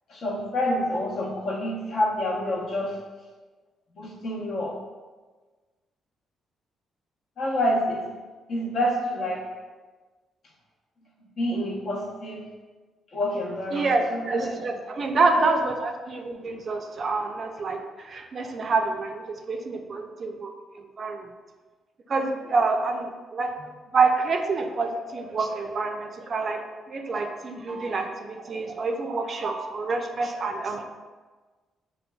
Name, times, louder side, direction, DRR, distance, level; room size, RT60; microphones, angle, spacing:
voice 1, 0.1-3.0 3.9-4.8 7.4-8.1 8.5-9.4 11.4-12.4 13.1-14.6 15.3-15.6, left 1 dB, 60° left, -3 dB, 0.8 m, -28 dB
voice 2, 13.7-21.3 22.1-23.7 23.9-30.9, right 3 dB, 45° right, 4 dB, 0.4 m, -27 dB
5.5 x 2.2 x 2.2 m, 1.3 s
cardioid pair, 90°, 0 cm